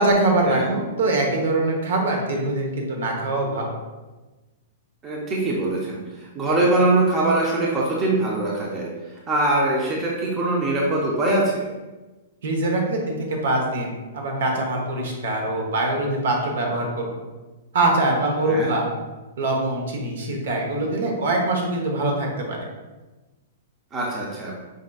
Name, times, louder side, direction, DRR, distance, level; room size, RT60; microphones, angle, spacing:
voice 1, 0.0-3.8 12.4-17.2 17.7-18.9 19.4-22.6, right 2 dB, 60° right, 1 dB, 0.9 m, -23 dB
voice 2, 5.0-8.9 9.3-11.7 18.5-18.7 23.9-24.5, right 2 dB, 15° right, -4 dB, 0.5 m, -22 dB
5.0 x 3.8 x 2.3 m, 1.2 s
hypercardioid pair, 175°, 0 cm